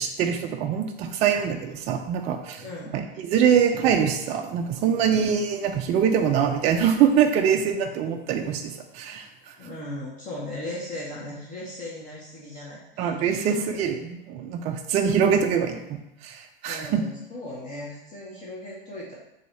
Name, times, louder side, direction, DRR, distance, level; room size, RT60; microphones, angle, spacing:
voice 1, 0.0-2.6 2.9-9.5 13.0-17.0, right 8 dB, 25° right, 4 dB, 0.3 m, -24 dB
voice 2, 2.6-3.0 9.6-13.7 16.6-19.2, left 1 dB, 25° left, -6 dB, 1.2 m, -37 dB
4.0 x 2.7 x 4.5 m, 0.86 s
hypercardioid pair, 115°, 29 cm